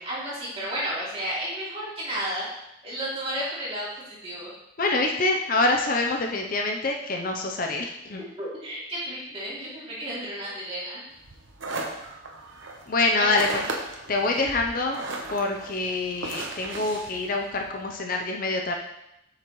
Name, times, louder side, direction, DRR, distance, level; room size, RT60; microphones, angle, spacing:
voice 1, 0.0-2.5 2.8-3.9 4.2-4.5 8.4-11.0 13.2-13.4, right 1 dB, 30° right, -8 dB, 2.7 m, -32 dB
voice 2, 4.8-8.2 12.9-13.6 14.1-15.0 15.3-18.7, left 2 dB, 45° left, 2 dB, 0.6 m, -25 dB
sound 1, 11.2-17.9, right 2 dB, 70° right, 1.0 m, -37 dB
7.9 x 5.8 x 3.1 m, 0.84 s
head